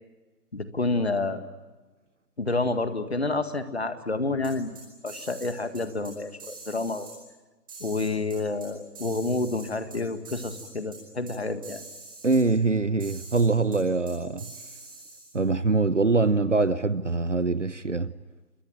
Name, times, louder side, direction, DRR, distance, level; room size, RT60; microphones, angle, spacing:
voice 1, 0.5-1.4 2.4-4.7 5.0-7.1 7.8-11.8, left 3 dB, 40° left, 1.8 m, -29 dB
sound 1, 4.4-5.5 5.7-6.1 6.4-7.1 7.7-8.7 8.9-10.0 10.2-10.7 10.9-11.0 11.3-11.4 11.6-12.4 13.0-13.4 13.7-13.8 14.1-15.4, right 3 dB, 15° right, 4.9 m, -44 dB
voice 2, 12.2-14.5 15.3-18.1, right 3 dB, 50° right, 0.9 m, -23 dB
28.0 x 23.0 x 9.1 m
figure-of-eight pair, 180°, 48 cm